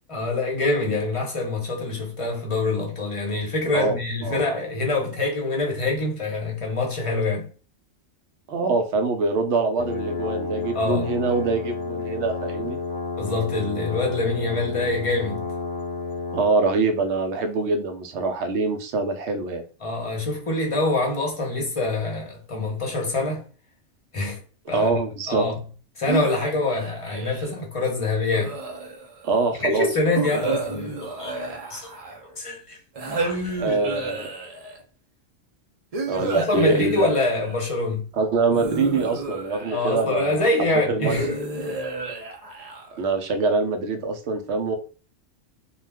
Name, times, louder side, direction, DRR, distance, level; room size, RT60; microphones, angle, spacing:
voice 1, 0.1-7.5 10.7-11.1 13.2-15.5 19.8-23.5 24.1-24.4 24.7-25.0 25.3-25.6 26.0-28.6 29.6-31.4 31.7-31.9 32.4-32.8 33.2-33.8 36.2-38.1 39.7-41.3, left 2 dB, 30° left, 0.8 m, -25 dB
voice 2, 8.5-12.8 16.3-19.6 24.7-25.5 29.2-29.9 30.5-30.6 33.6-34.3 36.1-37.1 38.2-41.1 43.0-44.8, right 3 dB, 70° right, 0.8 m, -24 dB
sound 1, 9.8-16.5, left 4 dB, 70° left, 1.0 m, -31 dB
sound 2, 26.1-27.6 28.3-29.2 30.1-32.3 33.0-34.8 35.9-37.7 38.5-40.2 41.1-43.0, right 2 dB, 45° right, 0.5 m, -31 dB
2.3 x 2.3 x 3.3 m
omnidirectional pair, 1.3 m